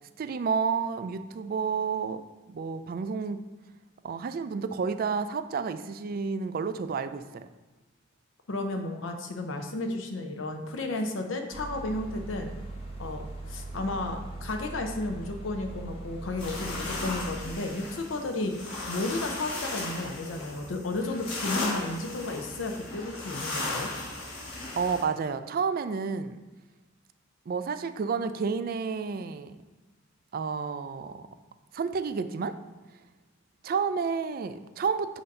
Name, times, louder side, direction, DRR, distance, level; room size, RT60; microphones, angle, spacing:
voice 1, 0.2-3.4 4.0-7.5 24.8-26.4 27.5-29.6 30.3-31.3 31.7-32.6 33.6-35.2, right 5 dB, 45° right, 11 dB, 0.3 m, -30 dB
voice 2, 8.5-12.5 13.0-18.5 18.9-23.9, left 2 dB, 75° left, 4 dB, 0.7 m, -33 dB
sound 1, 11.5-17.5, right 2 dB, 30° left, 1.2 m, -40 dB
sound 2, 16.4-25.0, left 2 dB, 60° left, 2.0 m, -36 dB
7.8 x 2.7 x 5.3 m, 1.2 s
head